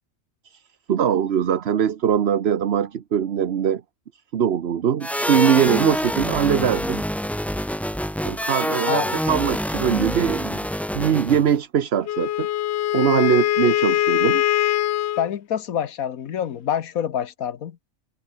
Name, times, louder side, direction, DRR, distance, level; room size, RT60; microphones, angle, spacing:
voice 1, 0.9-3.8 4.3-7.0 8.2-10.6 10.9-12.5 12.9-14.4, right 8 dB, 50° right, 1.0 m, -22 dB
sound 1, 5.0-11.6, equal, ahead, 0.5 m, -26 dB
voice 2, 8.9-9.2 15.2-17.8, left 9 dB, 80° left, 1.5 m, -26 dB
Wind instrument woodwind instrument, 12.1-15.3, left 13 dB, 65° left, 0.7 m, -22 dB
omnidirectional pair, 1.5 m